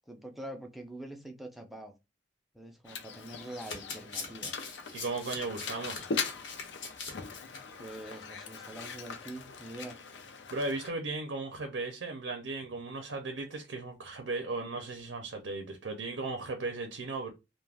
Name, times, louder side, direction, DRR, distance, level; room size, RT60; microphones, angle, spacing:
voice 1, 0.1-1.9 2.5-4.5 7.8-10.0, right 1 dB, ahead, 0.4 m, -44 dB
Mechanisms, 2.8-10.9, left 5 dB, 70° left, 0.4 m, -41 dB
Domestic sounds home sounds, 3.5-7.6 7.9-8.1 8.4-8.5, left 4 dB, 85° left, 0.9 m, -42 dB
voice 2, 4.9-6.1 10.5-17.3, right 3 dB, 85° right, 0.5 m, -36 dB
2.4 x 2.1 x 3.3 m
head